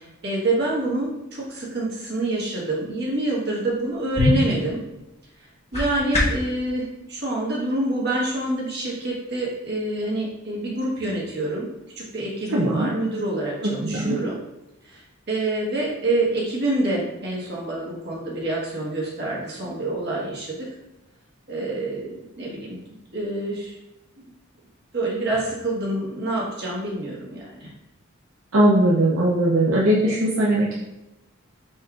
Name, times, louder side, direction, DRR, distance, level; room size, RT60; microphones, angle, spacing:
voice 1, 0.0-4.8 5.7-11.7 12.0-14.4 14.8-15.0 15.3-20.7 21.5-22.8 23.1-23.7 24.9-27.7, right 2 dB, 50° right, -4 dB, 1.4 m, -27 dB
sound 1, 3.7-6.6, left 2 dB, 30° left, 1.0 m, -25 dB
voice 2, 12.5-12.9 13.6-14.2 28.5-30.8, right 1 dB, 70° right, -3 dB, 0.6 m, -20 dB
4.5 x 4.3 x 2.4 m, 0.94 s
head